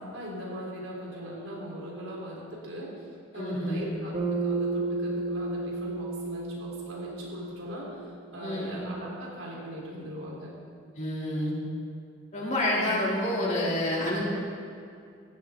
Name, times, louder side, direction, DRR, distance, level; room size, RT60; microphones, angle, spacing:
voice 1, 0.1-3.1 3.3-10.5, right 1 dB, 80° right, -4 dB, 3.8 m, -39 dB
voice 2, 3.4-3.8 8.4-8.8 10.9-11.5 12.3-14.2, left 1 dB, 40° left, -5 dB, 3.0 m, -28 dB
Bass guitar, 4.1-8.6, right 3 dB, 35° right, 1.3 m, -32 dB
15.5 x 12.0 x 3.8 m, 2.3 s
head